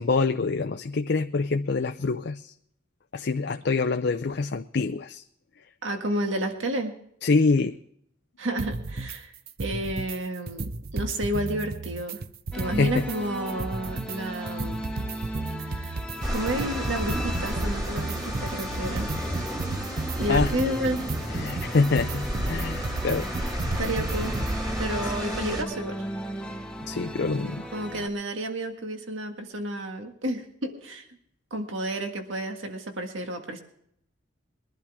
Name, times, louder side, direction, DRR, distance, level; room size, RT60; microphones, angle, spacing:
voice 1, 0.0-2.5 3.1-5.2 7.2-7.8 12.7-13.1 20.3-20.5 21.3-23.3 25.0-25.1 26.9-27.7, left 4 dB, 55° left, 7 dB, 0.5 m, -25 dB
voice 2, 5.8-7.0 8.4-9.3 9.6-12.3 12.5-14.8 15.6-15.9 16.3-19.1 20.2-21.0 23.8-24.4 24.8-26.0 27.7-31.1 31.5-33.6, right 1 dB, 75° right, 4 dB, 1.8 m, -31 dB
sound 1, 8.6-9.2 9.5-10.2 10.5-13.2 13.5-24.6, right 3 dB, 50° right, 0.7 m, -33 dB
sound 2, 12.5-28.1, equal, 5° left, 1.0 m, -37 dB
sound 3, 16.2-25.6, equal, 20° right, 2.1 m, -32 dB
22.0 x 11.5 x 3.6 m, 0.69 s
head